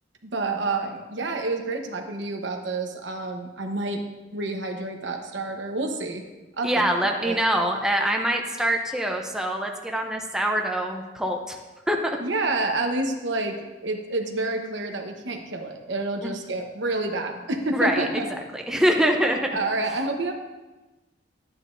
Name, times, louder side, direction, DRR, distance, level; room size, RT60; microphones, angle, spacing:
voice 1, 0.2-4.0 4.3-6.2 6.6-7.4 12.2-18.2 19.2-20.3, right 2 dB, 80° right, 3 dB, 1.1 m, -29 dB
voice 2, 6.6-11.6 11.9-12.2 16.2-16.3 17.7-18.2 18.5-19.5, equal, 5° right, 2 dB, 0.6 m, -24 dB
12.0 x 9.1 x 2.6 m, 1.1 s
head